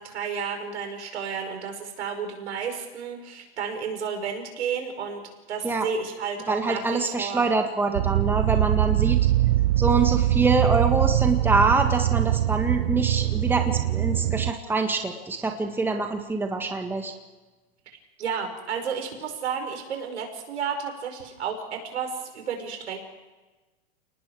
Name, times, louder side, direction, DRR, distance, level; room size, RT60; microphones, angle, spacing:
voice 1, 0.0-5.2 5.5-7.4 18.2-23.0, right 6 dB, 85° right, 4 dB, 5.4 m, -32 dB
voice 2, 6.5-9.2 9.8-17.1, right 3 dB, 5° right, 4 dB, 1.7 m, -25 dB
sound 1, 7.9-14.5, right 14 dB, 60° right, 0.9 m, -23 dB
30.0 x 19.0 x 4.9 m, 1.2 s
hypercardioid pair, 135°, 33 cm